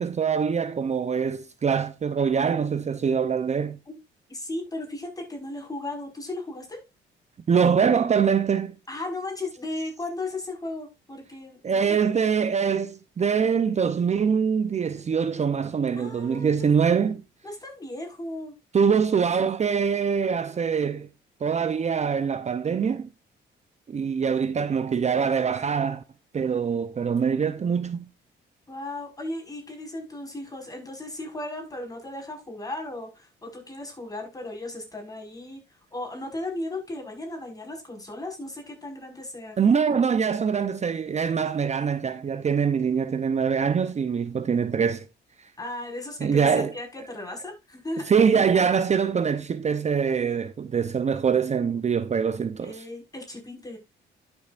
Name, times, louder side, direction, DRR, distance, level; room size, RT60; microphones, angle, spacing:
voice 1, 0.0-3.8 7.5-8.7 11.6-17.2 18.7-21.1 21.4-23.1 23.9-26.0 26.3-28.1 39.6-45.0 45.4-45.5 46.2-46.7 48.1-52.8, right 6 dB, 35° right, 0.6 m, -24 dB
voice 2, 4.3-6.8 8.9-12.2 16.0-16.6 17.4-18.5 28.7-35.6 35.9-39.6 45.6-48.1 52.6-53.8, left 2 dB, 20° left, 5.1 m, -36 dB
12.0 x 7.0 x 2.5 m
cardioid pair, 90°, 20 cm